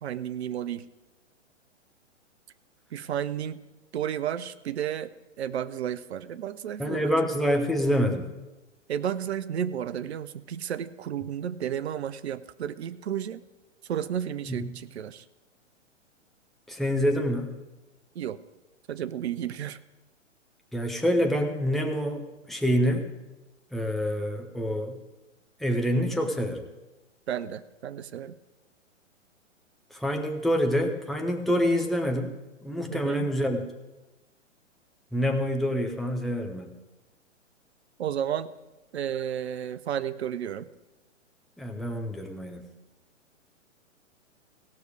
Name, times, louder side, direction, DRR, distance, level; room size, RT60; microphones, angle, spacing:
voice 1, 0.0-0.8 2.9-3.6 3.9-7.3 8.9-13.4 13.8-15.2 18.1-18.4 18.9-19.8 27.3-28.3 32.9-33.3 38.0-38.5 38.9-40.7, right 9 dB, 60° right, 15 dB, 0.7 m, -32 dB
voice 2, 6.8-8.3 14.5-14.7 16.7-17.5 20.7-23.1 23.7-25.0 25.6-26.6 29.9-32.4 32.6-33.6 35.1-36.7 41.6-42.7, equal, ahead, 2 dB, 0.6 m, -26 dB
17.0 x 6.4 x 4.9 m, 1.1 s
figure-of-eight pair, 120°, 37 cm